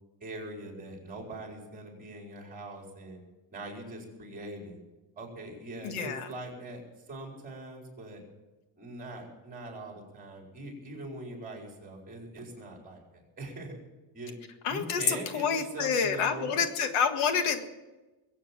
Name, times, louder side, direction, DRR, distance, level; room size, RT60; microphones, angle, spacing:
voice 1, 0.2-3.2 3.5-4.8 5.2-6.8 7.1-8.2 8.8-13.7 14.1-14.4 14.7-15.4 15.7-16.6, right 2 dB, 15° right, 0 dB, 4.5 m, -42 dB
voice 2, 5.8-6.3 14.6-17.6, left 6 dB, 85° left, 7 dB, 1.9 m, -28 dB
22.0 x 8.5 x 7.5 m, 1.1 s
cardioid pair, 180°, 50 cm